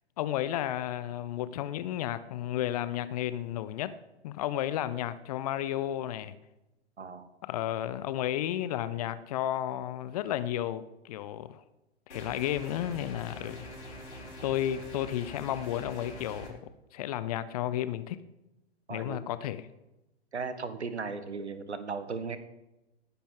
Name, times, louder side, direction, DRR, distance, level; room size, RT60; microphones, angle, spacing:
voice 1, 0.2-4.0 4.2-6.3 7.4-11.6 12.1-13.7 14.4-16.6 16.9-18.2 18.9-19.7, left 12 dB, 35° left, 0.7 m, -32 dB
voice 2, 7.0-7.3 18.9-19.2 20.3-22.4, right 4 dB, 75° right, 1.4 m, -36 dB
sound 1, 12.1-16.5, equal, 80° left, 4.7 m, -44 dB
19.0 x 10.0 x 3.7 m
figure-of-eight pair, 115°, 33 cm